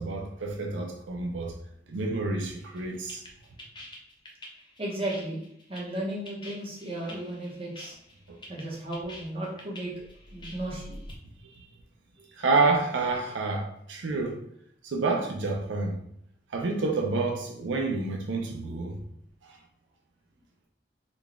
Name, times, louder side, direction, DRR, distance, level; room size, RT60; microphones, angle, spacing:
voice 1, 0.0-1.5 1.9-3.2 7.1-7.2 8.3-8.4 11.6-11.7 12.4-14.4 14.8-16.0 16.5-19.0 19.4-19.6, right 3 dB, 85° right, 0.5 m, -28 dB
sound 1, 2.6-11.2, left 1 dB, 25° left, 0.5 m, -46 dB
voice 2, 4.8-5.4 5.7-8.0 8.5-9.9 10.3-11.0, right 1 dB, 30° right, 1.0 m, -34 dB
3.9 x 2.3 x 3.4 m
head